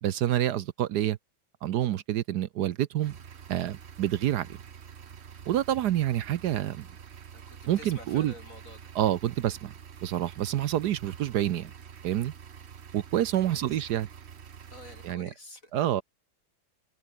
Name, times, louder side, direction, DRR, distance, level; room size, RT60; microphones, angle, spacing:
voice 1, 0.0-1.2 1.6-3.2 3.5-4.5 5.5-6.9 7.7-8.3 8.9-9.7 10.0-11.7 12.0-12.3 12.9-14.1 15.0-15.3 15.7-16.0, right 12 dB, 65° right, 1.1 m, -27 dB
sound 1, 3.0-15.2, right 7 dB, 45° right, 1.0 m, -47 dB
voice 2, 7.3-8.9 13.4-13.8 14.7-15.7, left 2 dB, 40° left, 7.9 m, -49 dB
omnidirectional pair, 2.2 m